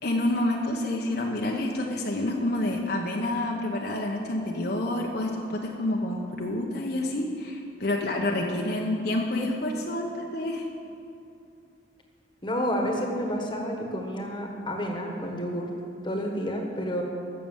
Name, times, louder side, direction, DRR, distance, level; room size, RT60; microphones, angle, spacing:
voice 1, 0.0-10.7, left 1 dB, 55° left, 0 dB, 1.0 m, -28 dB
voice 2, 12.4-15.7 16.0-17.0, equal, 25° left, 2 dB, 1.4 m, -30 dB
14.0 x 6.8 x 7.3 m, 2.6 s
head